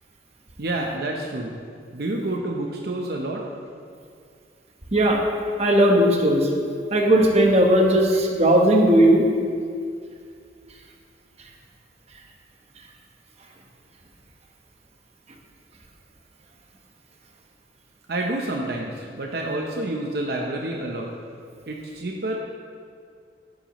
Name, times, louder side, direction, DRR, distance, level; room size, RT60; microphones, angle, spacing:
voice 1, 0.6-1.6 1.9-3.4 18.1-21.1 21.7-22.4, right 2 dB, 60° right, 0 dB, 0.8 m, -28 dB
voice 2, 5.6-6.5 6.9-9.2, right 1 dB, 35° right, 1 dB, 1.1 m, -17 dB
11.0 x 9.1 x 3.1 m, 2.2 s
head